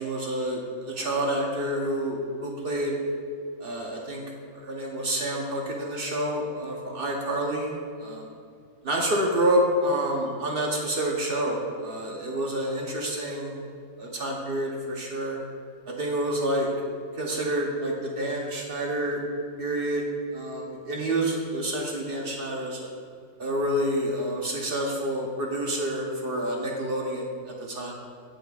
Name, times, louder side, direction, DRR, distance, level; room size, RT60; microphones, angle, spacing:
voice 1, 0.0-3.0 3.6-4.2 4.5-7.7 8.0-8.3 8.8-13.6 14.0-15.4 15.9-16.7 17.2-19.2 19.6-20.1 20.3-22.8 23.4-27.9, right 1 dB, 50° right, -1 dB, 0.6 m, -28 dB
14.0 x 5.0 x 2.4 m, 2.3 s
omnidirectional pair, 2.0 m